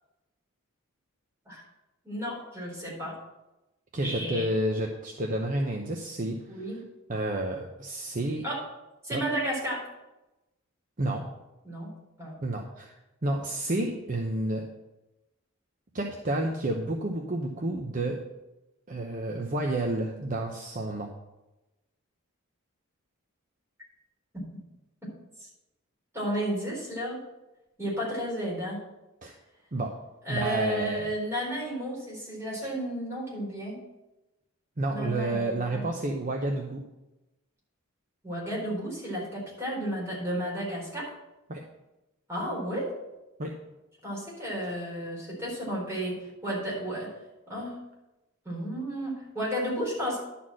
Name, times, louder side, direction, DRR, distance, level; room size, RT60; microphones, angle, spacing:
voice 1, 2.0-3.1 4.0-4.5 6.5-6.8 8.4-8.6 9.0-9.8 11.6-11.9 12.2-12.4 24.3-24.4 25.4-25.5 26.1-27.2 27.8-28.8 30.2-33.8 34.9-35.9 38.2-41.1 42.3-42.9 44.0-47.1 47.5-47.7 48.4-50.2, equal, 15° right, -6 dB, 4.3 m, -32 dB
voice 2, 3.9-6.7 7.1-8.4 9.1-9.2 11.0-11.3 12.4-13.0 13.2-14.7 15.9-18.2 18.9-21.1 29.2-29.3 29.7-29.9 30.3-31.1 32.6-32.7 34.8-36.8 41.5-41.6 43.4-43.5, right 1 dB, 40° right, 1 dB, 0.8 m, -30 dB
11.0 x 4.3 x 7.5 m, 0.99 s
head